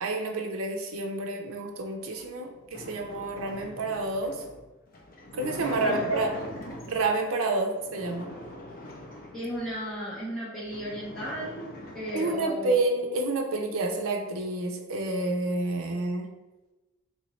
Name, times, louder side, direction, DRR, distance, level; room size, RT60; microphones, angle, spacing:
voice 1, 0.0-4.4 5.3-6.3 6.9-8.3 12.1-16.3, right 2 dB, 80° right, 3 dB, 0.5 m, -29 dB
sound 1, 2.0-7.2 7.8-9.8 10.3-10.4 10.6-12.5, left 1 dB, 40° left, 0.5 m, -42 dB
voice 2, 5.8-6.3 9.3-11.7 11.9-12.8, equal, ahead, -11 dB, 0.9 m, -34 dB
3.4 x 2.7 x 3.0 m, 1.1 s
head